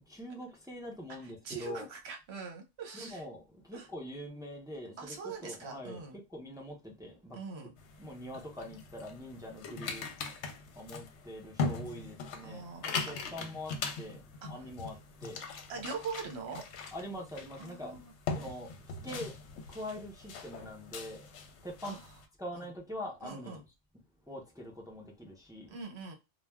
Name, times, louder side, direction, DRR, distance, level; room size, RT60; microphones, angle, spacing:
voice 1, 0.1-1.9 2.9-7.7 8.0-10.2 10.4-15.4 16.9-18.0 18.3-22.0 22.4-23.6 24.3-25.8, left 1 dB, 5° right, 0.4 m, -44 dB
voice 2, 1.2-3.2 3.7-3.9 5.0-6.2 7.3-7.7 12.4-13.2 14.4-14.5 15.7-16.6 17.6-18.1 21.8-22.0 22.5-22.7 23.2-23.6 25.7-26.1, right 5 dB, 65° right, 1.0 m, -42 dB
sound 1, 7.8-22.3, left 4 dB, 75° left, 0.8 m, -41 dB
3.2 x 2.3 x 2.2 m
omnidirectional pair, 1.2 m